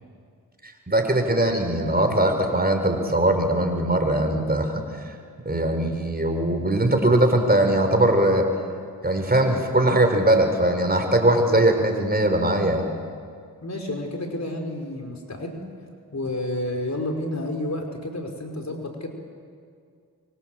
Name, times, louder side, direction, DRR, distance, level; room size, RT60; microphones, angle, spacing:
voice 1, 0.6-5.1 5.4-8.5 9.0-12.8, right 1 dB, 25° right, 5 dB, 4.9 m, -21 dB
voice 2, 13.6-15.6 16.1-19.1, left 1 dB, 40° left, 3 dB, 5.0 m, -30 dB
25.5 x 24.0 x 7.8 m, 2.2 s
supercardioid pair, 45°, 40 cm